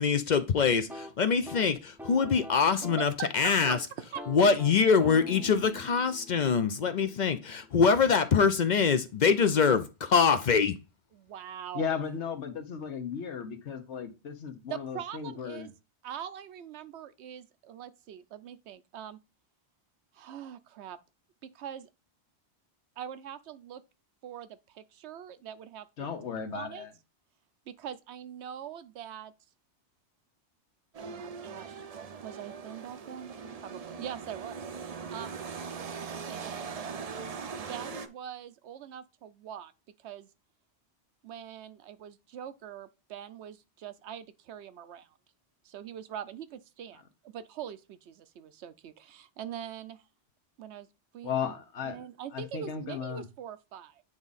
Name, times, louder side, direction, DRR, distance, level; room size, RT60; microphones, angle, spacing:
voice 1, 0.0-3.8 4.3-10.8, left 5 dB, 55° left, 0.5 m, -24 dB
sound 1, 0.8-3.1 3.4-3.8 4.1-8.0, left 1 dB, ahead, 0.5 m, -46 dB
voice 2, 3.0-3.5 4.0-4.2 11.1-11.9 14.7-15.7 16.0-19.2 20.1-21.0 21.5-21.9 23.0-23.8 24.2-26.9 27.7-29.3 31.0-31.8 32.2-34.6 34.8-35.3 35.7-37.0 37.7-39.7 40.0-40.3 41.2-45.1 45.6-50.0 50.6-50.9 51.1-51.5 51.9-54.0, right 9 dB, 75° right, 0.9 m, -43 dB
voice 3, 11.7-15.7 26.0-26.9 51.2-52.0 52.3-53.2, left 7 dB, 80° left, 1.3 m, -35 dB
sound 2, 30.9-38.1, right 5 dB, 45° right, 0.5 m, -40 dB
8.8 x 3.6 x 4.0 m
omnidirectional pair, 1.2 m